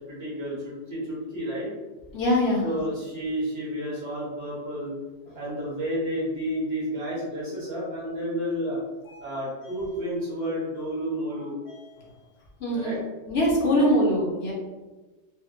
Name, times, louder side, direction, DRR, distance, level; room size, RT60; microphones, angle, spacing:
voice 1, 0.0-1.7 2.6-4.9 5.3-8.8 9.2-11.5 12.7-13.0 13.7-14.0, equal, 55° right, -8 dB, 1.5 m, -31 dB
voice 2, 2.1-2.6 5.3-5.4 9.1-9.3 11.7-12.1 12.6-13.0 13.3-14.5, equal, 60° left, -3 dB, 0.9 m, -24 dB
4.2 x 2.1 x 2.4 m, 1.2 s
omnidirectional pair, 1.3 m